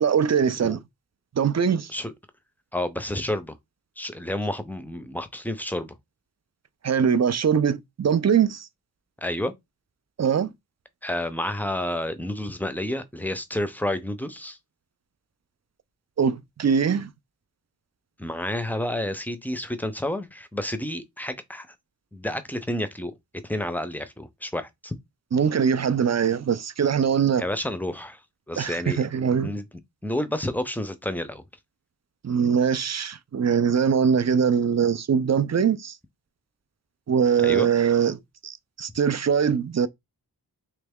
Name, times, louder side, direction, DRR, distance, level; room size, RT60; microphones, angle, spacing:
voice 1, 0.0-0.8 1.3-1.9 6.8-8.7 10.2-10.5 16.2-17.1 25.3-27.5 28.6-29.6 32.2-36.0 37.1-39.9, right 7 dB, 45° right, 0.4 m, -22 dB
voice 2, 2.7-3.6 4.0-6.0 9.2-9.5 11.0-14.6 18.2-21.7 22.1-23.1 23.4-24.9 27.4-28.2 28.5-29.0 29.4-29.6 30.0-31.4 37.4-37.7, left 1 dB, 5° left, 0.5 m, -30 dB
3.3 x 3.0 x 3.5 m
wide cardioid pair, 60°, 40 cm